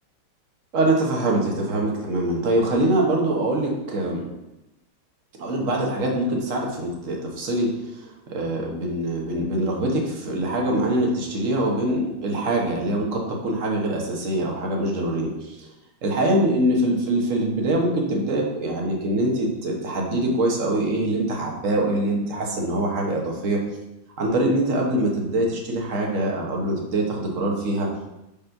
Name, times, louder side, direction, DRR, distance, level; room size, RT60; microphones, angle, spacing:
voice 1, 0.7-4.2 5.4-7.7 7.9-15.7 16.0-23.6 24.2-27.9, right 1 dB, 45° right, 0 dB, 1.4 m, -24 dB
5.3 x 4.2 x 5.7 m, 0.95 s
omnidirectional pair, 2.2 m